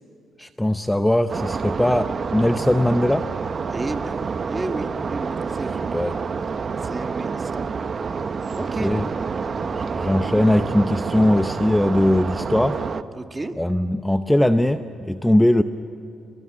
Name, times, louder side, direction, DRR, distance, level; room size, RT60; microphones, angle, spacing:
voice 1, 0.4-3.2 5.9-6.2 8.8-9.1 9.8-12.8 13.6-15.6, left 1 dB, 5° left, 9 dB, 0.8 m, -20 dB
sound 1, 1.3-13.0, right 5 dB, 40° right, 0.9 m, -28 dB
voice 2, 3.7-5.8 6.8-7.8 8.2-8.9 13.2-13.5, right 2 dB, 20° right, 6 dB, 1.9 m, -32 dB
29.0 x 23.0 x 7.5 m, 2.9 s
cardioid pair, 90°, 0 cm